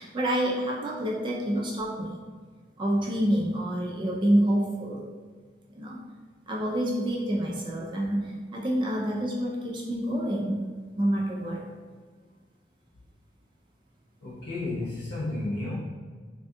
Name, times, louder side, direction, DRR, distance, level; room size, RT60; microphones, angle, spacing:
voice 1, 0.0-2.2 2.8-5.0 5.8-6.0 6.5-10.7 11.0-11.6, right 1 dB, 30° right, -3 dB, 0.3 m, -27 dB
voice 2, 14.2-15.8, left 2 dB, 65° left, -5 dB, 0.4 m, -32 dB
3.4 x 2.2 x 2.6 m, 1.5 s
head